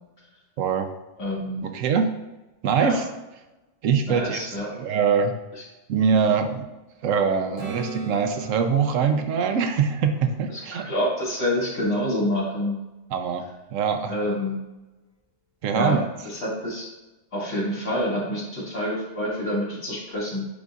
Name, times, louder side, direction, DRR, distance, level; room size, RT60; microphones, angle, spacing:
voice 1, 0.6-0.9 1.6-2.1 2.6-3.1 3.8-4.4 4.7-5.3 5.9-6.7 7.0-10.8 13.1-13.4 13.7-14.1 15.6-16.0, right 6 dB, 85° right, 6 dB, 1.1 m, -23 dB
voice 2, 1.2-1.6 2.8-3.0 4.1-4.8 10.5-12.8 14.1-14.6 15.7-16.9 17.3-20.5, left 1 dB, 75° left, -6 dB, 2.5 m, -27 dB
Acoustic guitar / Strum, 7.6-11.3 16.2-16.3, right 2 dB, 50° right, 1.8 m, -40 dB
10.0 x 4.0 x 2.4 m, 1.1 s
omnidirectional pair, 1.3 m